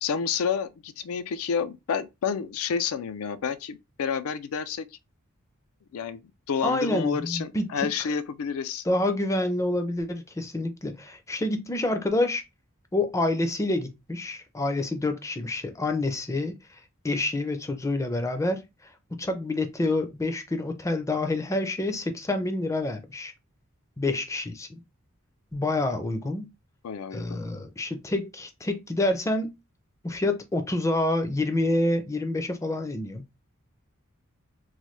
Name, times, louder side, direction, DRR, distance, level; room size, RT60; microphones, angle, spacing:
voice 1, 0.0-4.9 5.9-6.2 6.5-8.8 26.8-27.4, left 6 dB, 85° left, 0.4 m, -29 dB
voice 2, 6.6-7.9 8.9-12.4 12.9-16.8 17.0-18.9 19.2-23.3 24.0-24.8 25.5-26.5 27.1-29.5 30.0-33.3, left 2 dB, 15° left, 0.4 m, -28 dB
3.1 x 2.2 x 3.1 m
head